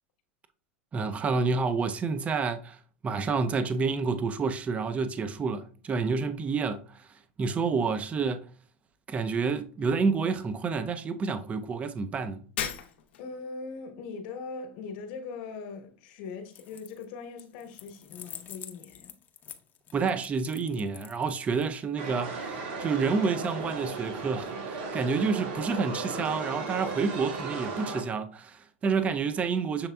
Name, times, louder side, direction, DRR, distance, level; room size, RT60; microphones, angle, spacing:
voice 1, 0.9-2.8 3.0-6.8 7.4-8.4 9.1-12.4 19.9-29.9, right 4 dB, 25° right, 0.5 m, -29 dB
Shatter, 12.6-13.4, left 9 dB, 80° left, 0.7 m, -35 dB
voice 2, 13.2-19.1, left 4 dB, 65° left, 1.0 m, -40 dB
sound 1, 16.5-17.0 17.4-21.6, left 9 dB, 30° left, 0.6 m, -46 dB
sound 2, 22.0-28.0, right 4 dB, 65° right, 1.7 m, -35 dB
7.0 x 3.3 x 2.2 m
supercardioid pair, 115°, 6 cm